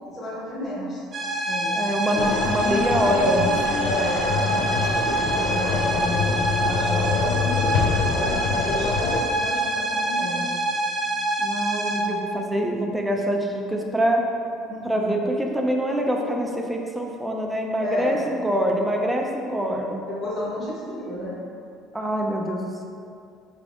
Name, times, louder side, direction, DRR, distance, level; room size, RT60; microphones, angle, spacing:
voice 1, 0.1-1.0 1.4-1.9 3.8-7.4 8.0-10.5 14.7-15.2 17.8-18.2 20.1-21.4, left 1 dB, 30° left, -7 dB, 0.9 m, -31 dB
sound 1, 1.1-12.0, right 2 dB, 40° right, 1.1 m, -26 dB
voice 2, 1.7-3.9 11.4-14.2 14.8-20.0 21.9-22.8, equal, 10° right, 1 dB, 0.5 m, -25 dB
sound 2, 2.2-9.2, left 5 dB, 80° left, 0.3 m, -25 dB
4.9 x 3.4 x 2.5 m, 2.5 s
cardioid pair, 110°, 0 cm